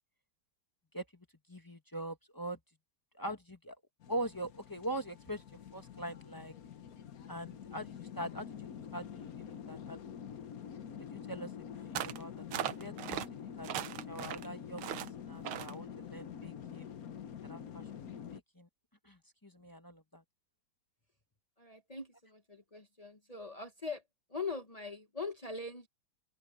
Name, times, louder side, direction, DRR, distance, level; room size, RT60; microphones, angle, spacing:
voice 1, 0.9-2.6 3.1-3.8 4.1-6.5 7.3-10.0 11.0-11.5 11.9-13.7 14.1-16.9 17.4-17.9 18.3-18.7 19.0-20.2, right 1 dB, 10° left, 1.1 m, -43 dB
sound 1, 4.0-18.4, left 8 dB, 55° left, 1.3 m, -46 dB
sound 2, 11.9-12.2 12.5-13.3 13.6-14.5 14.8-15.1 15.4-15.7, right 11 dB, 85° right, 1.7 m, -38 dB
voice 2, 21.6-24.0 24.3-25.9, left 4 dB, 35° left, 0.6 m, -42 dB
open air
omnidirectional pair, 2.3 m